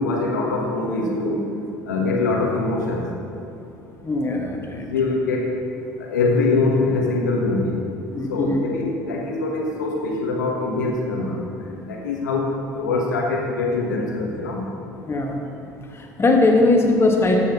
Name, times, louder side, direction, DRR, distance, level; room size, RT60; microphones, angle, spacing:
voice 1, 0.0-1.4 1.8-3.1 4.6-5.5 6.0-7.8 8.3-14.6, left 3 dB, 80° left, 0 dB, 1.3 m, -23 dB
voice 2, 4.0-4.8 8.1-8.6 15.1-15.4 15.9-17.4, left 2 dB, 25° left, 1 dB, 1.5 m, -19 dB
13.5 x 6.3 x 3.0 m, 2.8 s
hypercardioid pair, 65°, 10 cm